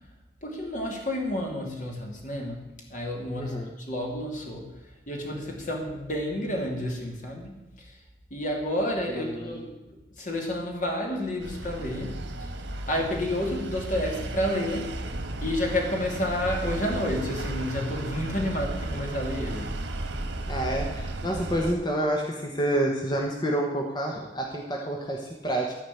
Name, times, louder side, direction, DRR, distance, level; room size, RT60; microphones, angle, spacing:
voice 1, 0.4-2.6 2.9-4.7 5.1-8.0 8.3-9.7 10.2-12.2 12.9-15.1 15.4-19.7, left 1 dB, 45° left, 0 dB, 2.6 m, -30 dB
voice 2, 3.4-3.7 9.1-9.7 20.5-25.7, right 1 dB, 25° left, -1 dB, 1.2 m, -28 dB
sound 1, 11.4-21.7, right 1 dB, 85° right, 1.5 m, -34 dB
14.5 x 5.0 x 8.4 m, 1.0 s
head